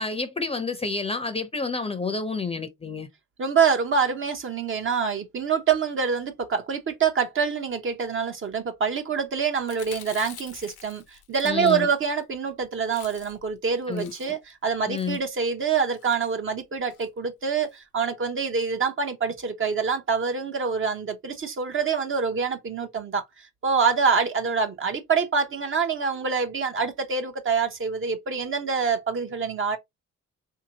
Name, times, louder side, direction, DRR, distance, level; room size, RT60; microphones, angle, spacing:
voice 1, 0.0-3.1 11.4-11.9 13.9-14.3 14.9-15.2, left 4 dB, 20° left, 0.6 m, -29 dB
voice 2, 3.4-29.8, right 5 dB, 45° right, 0.8 m, -26 dB
Chewing mastication, 9.6-12.2 12.5-12.6 12.8-13.5 13.8-14.5 14.9-15.3 15.9-16.2 16.9-17.1 17.4-17.5 17.7-17.8, left 10 dB, 80° left, 0.8 m, -46 dB
3.7 x 2.8 x 2.8 m
cardioid pair, 90°, 30 cm